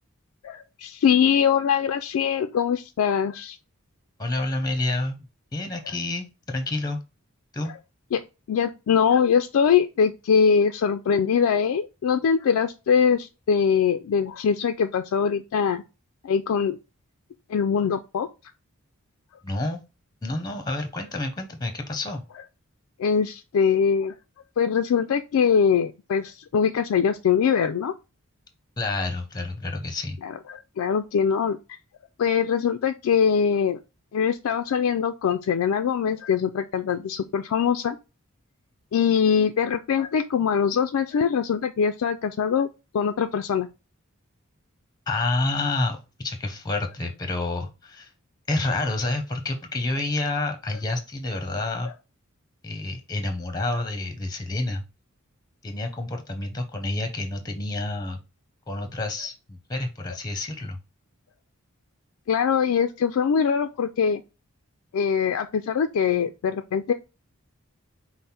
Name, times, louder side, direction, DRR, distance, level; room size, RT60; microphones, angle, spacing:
voice 1, 0.4-3.6 7.6-7.7 8.1-8.2 8.5-15.8 16.2-16.8 17.5-18.3 23.0-24.1 24.6-27.9 30.2-31.6 32.2-33.8 34.1-38.0 38.9-42.7 42.9-43.7 62.3-64.2 64.9-66.9, left 7 dB, 80° left, 0.3 m, -22 dB
voice 2, 4.2-5.3 5.5-7.0 7.5-7.7 19.4-19.8 20.2-22.2 28.8-30.2 45.1-48.1 48.5-51.9 52.6-54.8 55.6-58.2 58.7-60.8, left 2 dB, 15° left, 0.6 m, -29 dB
5.3 x 2.0 x 4.2 m
head